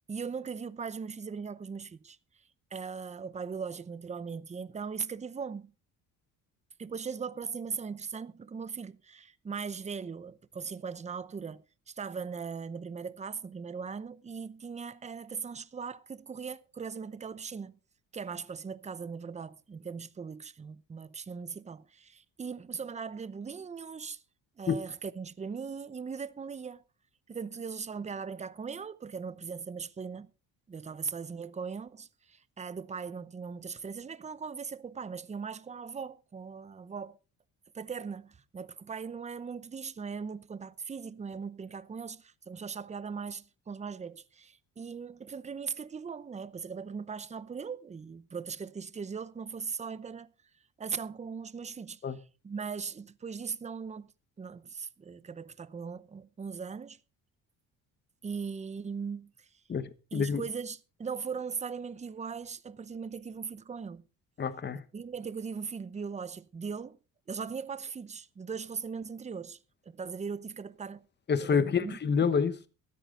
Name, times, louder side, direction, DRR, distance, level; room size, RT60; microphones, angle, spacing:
voice 1, 0.1-2.4 2.7-5.7 6.8-17.8 18.1-24.2 24.6-26.8 27.3-30.3 30.7-37.2 37.7-50.3 50.8-52.0 52.4-54.1 54.4-57.0 58.2-59.5 60.1-64.1 64.9-67.0 67.3-69.6 69.8-71.1 71.4-72.0, right 5 dB, 20° right, 0.7 m, -39 dB
voice 2, 59.7-60.4 64.4-64.8 71.3-72.6, left 6 dB, 30° left, 1.1 m, -28 dB
14.0 x 13.0 x 3.8 m
cardioid pair, 120°, 36 cm